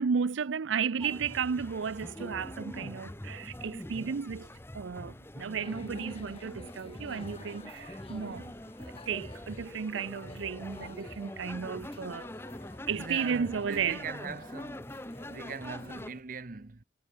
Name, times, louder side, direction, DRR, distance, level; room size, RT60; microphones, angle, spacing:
voice 1, 0.0-4.5 4.7-8.5 9.1-12.3 12.9-14.0, right 6 dB, 85° right, 0.5 m, -33 dB
sound 1, 1.0-16.1, left 1 dB, 10° left, 0.9 m, -44 dB
sound 2, 5.6-16.2, left 2 dB, 30° left, 3.6 m, -52 dB
voice 2, 12.9-14.9 15.3-16.8, right 4 dB, 45° right, 0.8 m, -41 dB
head